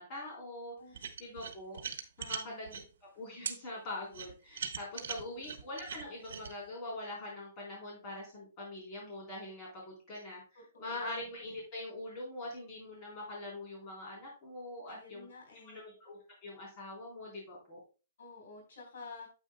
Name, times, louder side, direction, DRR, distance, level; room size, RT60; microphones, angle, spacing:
voice 1, 0.0-1.8 2.2-2.8 3.1-15.3 15.6-17.8, left 1 dB, 25° left, -3 dB, 3.7 m, -43 dB
sound 1, 0.9-2.8 3.4-3.6 4.1-6.5, right 7 dB, 85° right, 1.1 m, -40 dB
voice 2, 2.2-2.6 5.2-5.5 10.6-11.1 14.9-15.8 18.2-19.3, left 4 dB, 70° left, 1 dB, 3.9 m, -51 dB
9.1 x 8.1 x 2.2 m, 0.32 s
hypercardioid pair, 175°, 0 cm